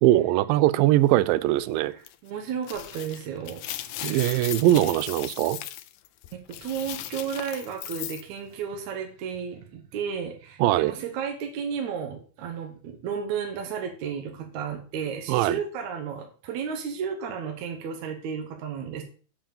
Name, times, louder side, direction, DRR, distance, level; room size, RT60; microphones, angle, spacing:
voice 1, 0.0-1.9 4.0-5.6 10.6-10.9 15.3-15.6, right 15 dB, 85° right, 17 dB, 2.3 m, -21 dB
voice 2, 1.9-4.1 6.3-19.0, right 7 dB, 65° right, 4 dB, 2.2 m, -33 dB
sound 1, 2.0-2.1 2.6-8.2, left 13 dB, 80° left, 1.7 m, -37 dB
7.9 x 4.9 x 7.0 m, 0.40 s
omnidirectional pair, 4.0 m